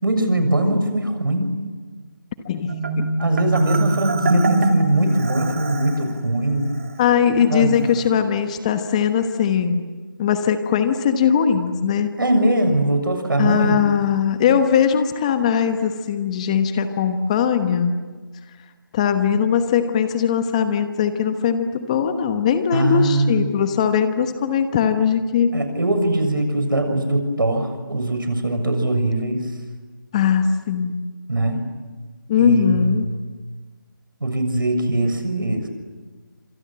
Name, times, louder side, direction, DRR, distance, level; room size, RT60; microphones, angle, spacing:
voice 1, 0.0-1.5 3.2-6.7 7.4-7.8 12.2-13.8 22.7-23.5 25.5-29.4 31.3-31.6 32.4-33.0 34.2-35.7, right 1 dB, 75° right, 7 dB, 6.8 m, -21 dB
Marimba xylophone, 2.7-6.0, right 2 dB, 40° right, 2.6 m, -22 dB
voice 2, 7.0-9.8 10.2-12.1 13.4-17.9 18.9-25.5 30.1-30.9 32.3-33.1, left 8 dB, 20° left, 9 dB, 1.1 m, -20 dB
28.5 x 26.5 x 7.7 m, 1.3 s
figure-of-eight pair, 160°, 11 cm